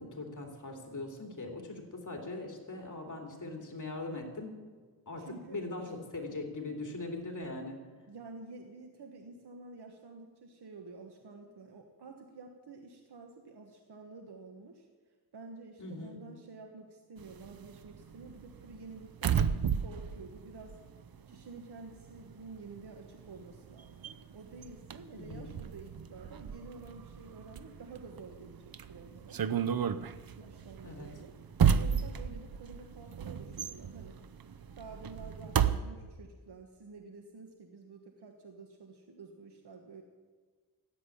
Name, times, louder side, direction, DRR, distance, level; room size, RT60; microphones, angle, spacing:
voice 1, 0.0-4.6 5.1-7.8 15.8-16.2 25.1-25.6 30.8-31.1, left 2 dB, 50° left, 2 dB, 3.0 m, -41 dB
voice 2, 5.2-5.9 8.1-14.9 15.3-19.4 19.8-20.8 21.3-29.4 30.4-31.3 31.8-34.2 34.8-40.0, right 3 dB, 90° right, 4 dB, 1.4 m, -50 dB
sound 1, 17.2-21.6 21.9-35.8, right 8 dB, 65° right, 0.8 m, -33 dB
14.5 x 8.5 x 9.9 m, 1.5 s
wide cardioid pair, 85°, 38 cm